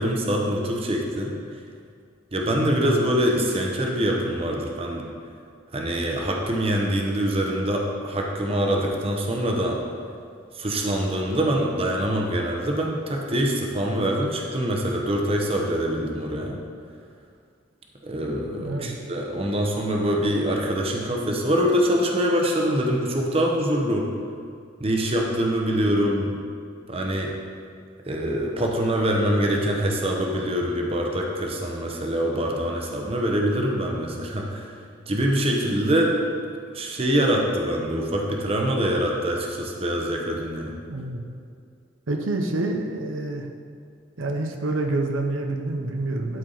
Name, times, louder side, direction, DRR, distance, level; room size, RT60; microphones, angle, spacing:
voice 1, 0.0-1.3 2.3-5.1 5.7-9.8 10.5-16.6 18.0-24.1 24.8-26.3 26.9-27.4 28.0-34.7 35.1-36.1 36.7-40.7, equal, 30° right, 0 dB, 0.8 m, -24 dB
voice 2, 2.5-3.0 18.6-18.9 40.9-41.2 42.1-43.5 44.2-46.4, right 2 dB, 90° right, 3 dB, 0.8 m, -27 dB
12.0 x 4.7 x 3.9 m, 2.3 s
head